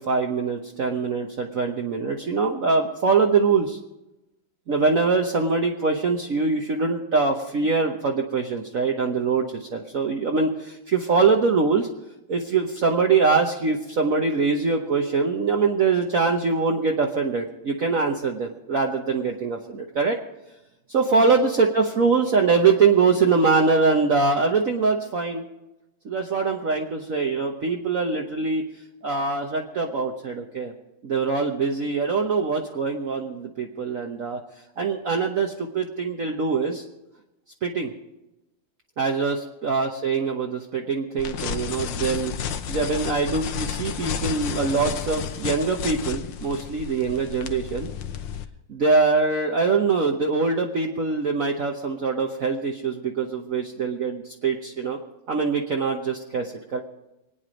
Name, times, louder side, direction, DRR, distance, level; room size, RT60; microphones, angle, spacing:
voice 1, 0.0-3.8 4.7-11.9 12.3-20.2 20.9-25.4 26.0-28.6 29.0-30.7 31.0-34.4 34.8-36.8 37.6-37.9 39.0-42.3 42.7-47.9 48.7-55.0 55.3-56.8, right 4 dB, 50° right, 1 dB, 1.3 m, -23 dB
sound 1, 41.2-48.4, left 8 dB, 75° left, 1.5 m, -31 dB
25.5 x 9.4 x 5.1 m, 0.98 s
omnidirectional pair, 2.1 m